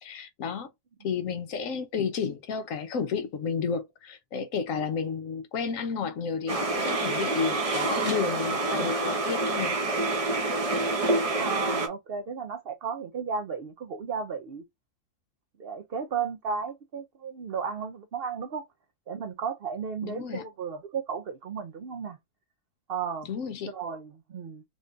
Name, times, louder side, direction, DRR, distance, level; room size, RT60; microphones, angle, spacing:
voice 1, 0.0-0.7 1.0-9.8 20.0-20.4 23.2-23.7, left 6 dB, 65° left, 1.0 m, -32 dB
sound 1, 6.5-11.9, right 2 dB, 30° right, 0.8 m, -27 dB
voice 2, 11.4-14.6 15.6-18.7 19.1-22.2 22.9-23.3 23.7-24.6, right 6 dB, 70° right, 0.5 m, -34 dB
3.6 x 2.6 x 3.2 m
omnidirectional pair, 1.6 m